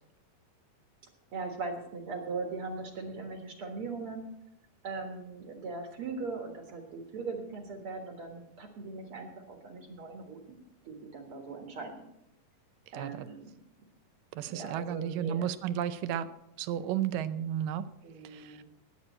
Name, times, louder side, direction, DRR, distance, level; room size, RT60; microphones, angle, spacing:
voice 1, 1.3-4.3 4.8-10.6 10.8-12.0 12.9-13.5 14.5-15.5 18.0-18.6, right 4 dB, 50° right, 3 dB, 1.9 m, -40 dB
voice 2, 12.9-13.3 14.3-16.3 16.6-17.9 18.2-18.6, right 10 dB, 80° right, 13 dB, 2.3 m, -33 dB
19.0 x 8.4 x 4.3 m, 0.82 s
omnidirectional pair, 4.0 m